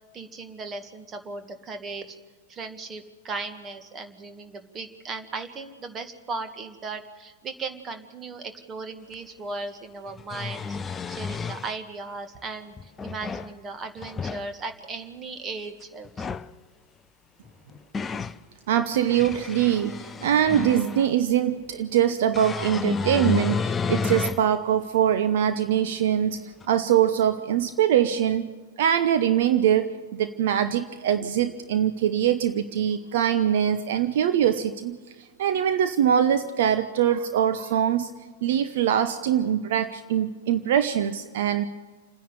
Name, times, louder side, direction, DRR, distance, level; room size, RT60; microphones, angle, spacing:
voice 1, 0.1-2.2 2.5-16.4, right 3 dB, 20° right, 8 dB, 1.9 m, -37 dB
sound 1, 9.1-9.2 10.1-11.7 12.8-13.5 14.0-14.5 16.0-16.5 17.5-18.4 18.9-21.1 22.3-24.5 25.0-25.1 26.6-26.7, left 5 dB, 15° left, 0.5 m, -31 dB
voice 2, 18.7-19.9 20.2-23.6 23.9-26.4 26.7-28.5 28.8-35.0 35.4-38.1 38.4-41.7, right 10 dB, 55° right, 10 dB, 0.9 m, -23 dB
29.0 x 10.0 x 9.1 m, 1.4 s
figure-of-eight pair, 100°, 0 cm